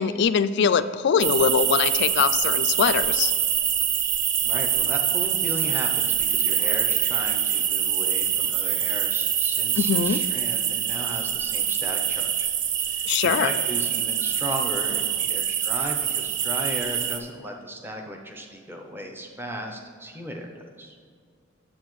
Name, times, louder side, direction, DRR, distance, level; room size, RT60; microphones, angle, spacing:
voice 1, 0.0-3.3 9.8-10.2 13.1-13.5, left 6 dB, 55° left, 13 dB, 0.3 m, -22 dB
sound 1, 1.2-17.2, right 9 dB, 55° right, 0.5 m, -25 dB
voice 2, 4.4-12.5 12.8-20.9, equal, 10° right, 2 dB, 0.6 m, -36 dB
9.6 x 7.3 x 3.1 m, 2.1 s
head